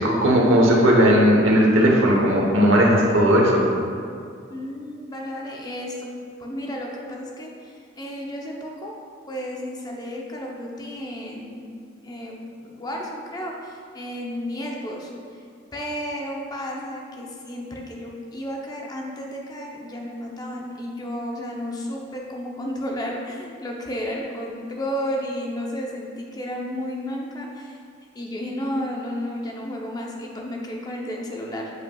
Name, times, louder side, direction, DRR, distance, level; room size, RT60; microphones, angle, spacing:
voice 1, 0.0-3.6, equal, 90° right, -2 dB, 1.1 m, -17 dB
voice 2, 4.5-6.1 6.4-8.9 9.3-11.7 12.0-15.1 15.7-27.8 28.1-31.7, equal, 20° left, -1 dB, 0.7 m, -32 dB
7.8 x 5.3 x 2.3 m, 2.3 s
head